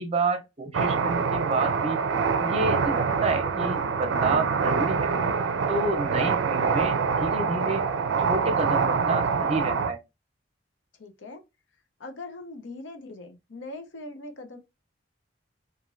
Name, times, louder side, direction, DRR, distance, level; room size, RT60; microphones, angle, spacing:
voice 1, 0.0-2.0 2.4-5.1 5.7-7.8 8.3-10.0, right 2 dB, 35° right, 0.6 m, -29 dB
sound 1, 0.7-9.9, right 5 dB, 85° right, 0.4 m, -25 dB
voice 2, 11.0-11.4 12.0-14.6, left 2 dB, 80° left, 0.7 m, -41 dB
2.9 x 2.5 x 2.5 m
head